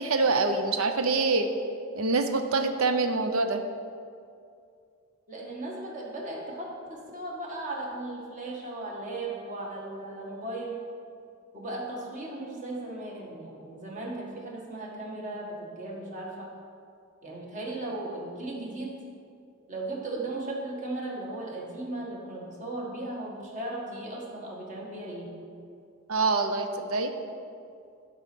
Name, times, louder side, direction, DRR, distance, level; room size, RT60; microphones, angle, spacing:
voice 1, 0.0-1.5 2.0-3.6 26.1-27.1, right 3 dB, 85° right, 7 dB, 0.7 m, -25 dB
voice 2, 5.3-10.8 11.5-16.5 17.2-18.9 19.7-25.3, right 2 dB, 40° right, -2 dB, 1.6 m, -36 dB
11.5 x 4.3 x 6.0 m, 2.4 s
head